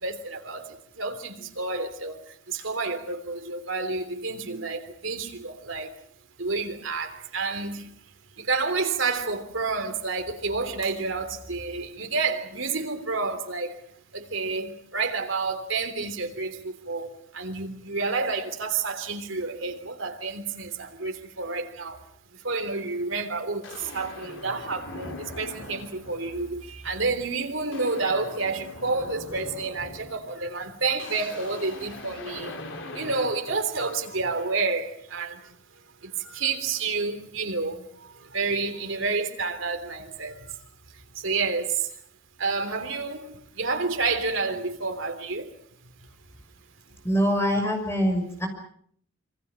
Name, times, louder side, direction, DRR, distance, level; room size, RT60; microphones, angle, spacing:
voice 1, 0.0-2.2 2.5-5.9 6.4-7.9 8.4-13.7 14.1-22.0 22.4-32.5 32.9-35.4 36.2-37.8 38.3-40.3 41.2-41.8 42.4-45.5, right 4 dB, 75° right, 3.3 m, -29 dB
sound 1, 22.8-22.9 23.6-26.5 26.9-27.2 27.5-34.6, left 2 dB, 70° left, 4.8 m, -42 dB
voice 2, 47.0-48.5, equal, 15° left, 6.0 m, -24 dB
27.0 x 25.0 x 6.3 m
head